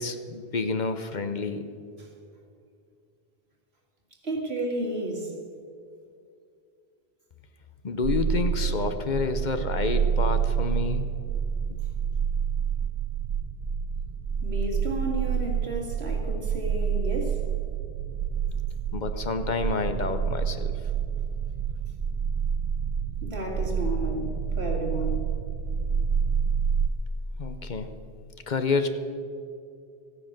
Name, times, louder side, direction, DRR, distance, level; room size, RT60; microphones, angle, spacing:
voice 1, 0.0-1.7 7.8-11.1 18.9-20.8 27.4-27.9 28.5-28.9, left 4 dB, 50° left, 9 dB, 0.8 m, -29 dB
voice 2, 4.2-5.3 14.4-17.4 23.2-25.2, right 1 dB, 85° right, 0 dB, 2.3 m, -32 dB
sound 1, 8.0-26.9, right 7 dB, 55° right, 0.4 m, -28 dB
15.0 x 9.5 x 6.5 m, 2.4 s
omnidirectional pair, 1.0 m